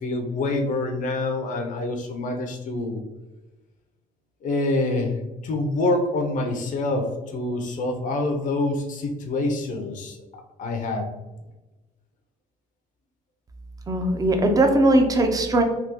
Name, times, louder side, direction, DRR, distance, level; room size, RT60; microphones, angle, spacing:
voice 1, 0.0-3.0 4.4-10.2 10.6-11.1, left 2 dB, 50° left, 4 dB, 0.5 m, -26 dB
voice 2, 13.9-15.6, right 1 dB, 20° right, 5 dB, 0.5 m, -19 dB
3.4 x 2.3 x 2.9 m, 1.1 s
cardioid pair, 110°, 17 cm